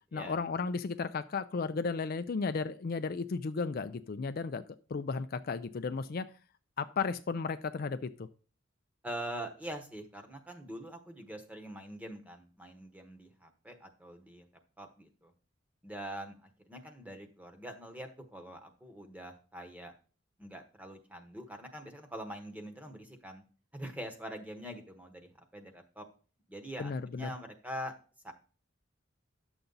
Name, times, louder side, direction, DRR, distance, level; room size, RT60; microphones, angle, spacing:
voice 1, 0.1-4.6 4.9-6.3 6.8-8.3 26.8-27.3, left 4 dB, 50° left, 10 dB, 0.4 m, -34 dB
voice 2, 9.0-14.5 14.8-15.3 15.8-19.9 20.4-23.4 23.7-26.1 26.5-27.9 28.2-28.3, right 1 dB, 10° right, 5 dB, 1.1 m, -44 dB
10.0 x 6.9 x 3.9 m, 0.40 s
head